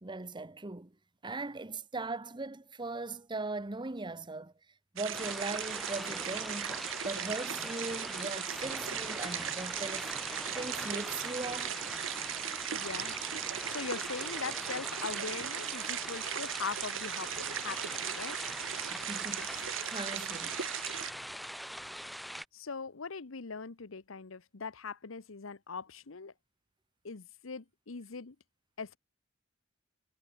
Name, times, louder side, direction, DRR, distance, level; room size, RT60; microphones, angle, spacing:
voice 1, 0.0-0.9 1.2-4.5 4.9-6.8 7.0-11.7 18.9-19.5 19.8-20.6, right 3 dB, 25° right, 1.0 m, -39 dB
sound 1, 5.0-21.1, right 10 dB, 70° right, 1.0 m, -38 dB
sound 2, 5.1-22.4, equal, ahead, 1.3 m, -42 dB
voice 2, 12.7-13.2 13.7-18.4 22.5-26.3 27.0-28.4 28.8-29.0, left 5 dB, 90° left, 1.0 m, -41 dB
head